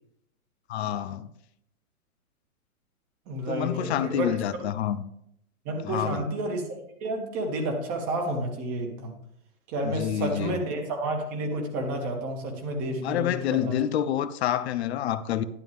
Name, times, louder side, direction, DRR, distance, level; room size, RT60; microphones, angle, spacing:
voice 1, 0.7-1.3 3.5-5.0 5.8-6.3 9.8-10.6 13.0-15.4, left 11 dB, 50° left, 0.7 m, -28 dB
voice 2, 3.3-4.3 5.6-9.1 9.7-13.8, right 1 dB, 35° right, 2.5 m, -30 dB
11.5 x 11.0 x 3.6 m
hypercardioid pair, 140°, 43 cm